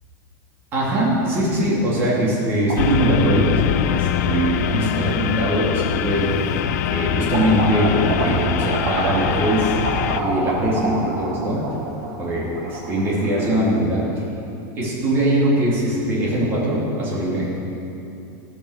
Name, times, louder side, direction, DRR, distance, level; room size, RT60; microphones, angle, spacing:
voice 1, 0.7-6.3 6.9-9.7 10.2-11.6 12.2-14.1 14.8-17.5, right 1 dB, 25° right, -6 dB, 3.0 m, -21 dB
sound 1, 2.7-3.8 4.6-4.7 5.9-6.0 6.4-7.0 7.3-13.8, right 2 dB, 65° right, 3.4 m, -27 dB
sound 2, 2.8-10.2, left 11 dB, 55° left, 0.5 m, -24 dB
15.0 x 8.7 x 6.6 m, 2.8 s
supercardioid pair, 175°, 10 cm